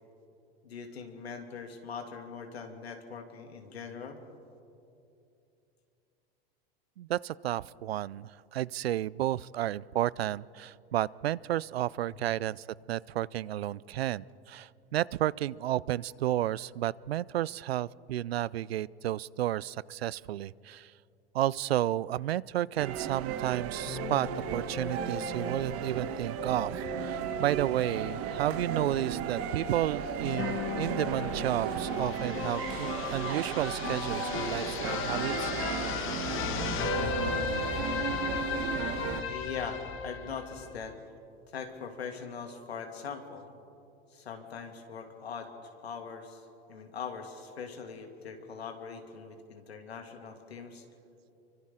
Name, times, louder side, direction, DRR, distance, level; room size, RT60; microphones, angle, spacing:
voice 1, 0.6-4.2 39.3-41.0 41.5-43.4 44.1-50.8, left 6 dB, 90° left, 4 dB, 2.6 m, -41 dB
voice 2, 7.0-20.9 21.3-35.8, right 13 dB, 85° right, 22 dB, 0.5 m, -32 dB
sound 1, 22.8-39.2, right 9 dB, 50° right, 1.5 m, -35 dB
sound 2, 23.8-40.9, left 7 dB, 40° left, 1.9 m, -36 dB
30.0 x 24.5 x 3.8 m, 2.7 s
hypercardioid pair, 95°, 30 cm